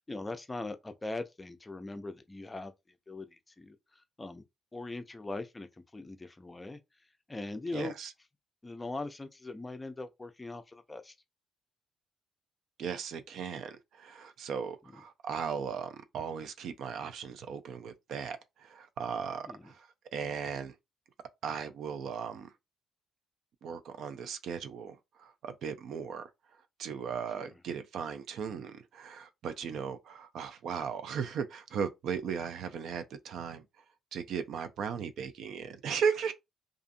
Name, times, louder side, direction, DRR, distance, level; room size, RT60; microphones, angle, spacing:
voice 1, 0.1-2.7 3.1-3.8 4.2-4.4 4.7-5.7 5.9-6.8 7.3-7.9 8.6-11.1 19.5-19.7 27.4-27.5, left 2 dB, 20° left, 0.4 m, -40 dB
voice 2, 7.7-8.1 12.8-20.8 21.4-22.5 23.6-26.3 26.8-33.6 34.1-36.3, right 6 dB, 75° right, 0.4 m, -37 dB
2.5 x 2.4 x 2.5 m
cardioid pair, 90°, 0 cm